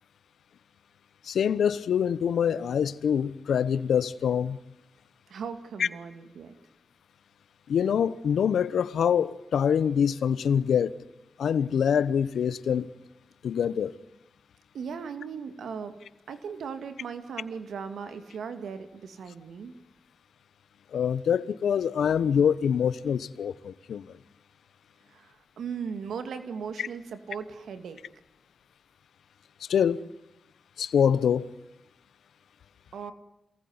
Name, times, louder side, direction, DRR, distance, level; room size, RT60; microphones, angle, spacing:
voice 1, 1.2-4.6 5.8-5.9 7.7-10.9 11.4-12.9 13.4-13.9 20.9-24.2 29.7-30.0 30.8-31.5, left 8 dB, 90° left, 1.0 m, -25 dB
voice 2, 5.3-6.5 14.7-16.0 16.3-19.8 25.1-28.0 32.9-33.1, right 6 dB, 90° right, 2.2 m, -38 dB
27.5 x 19.5 x 9.7 m
cardioid pair, 60°, 0 cm